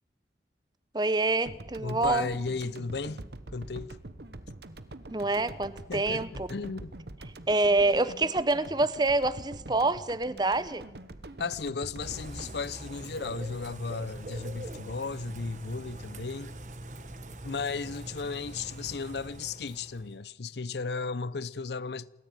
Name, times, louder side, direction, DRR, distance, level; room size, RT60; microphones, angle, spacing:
voice 1, 0.9-2.3 5.1-6.5 7.5-10.8, right 2 dB, 25° right, 0.7 m, -26 dB
sound 1, 1.5-13.9, right 1 dB, 70° right, 1.2 m, -45 dB
voice 2, 1.8-3.2 3.5-4.0 5.9-6.9 11.4-16.5 17.4-22.1, left 4 dB, 70° left, 0.7 m, -35 dB
Bird / Rain, 12.0-20.2, right 1 dB, 45° right, 1.4 m, -43 dB
28.5 x 13.5 x 9.1 m
head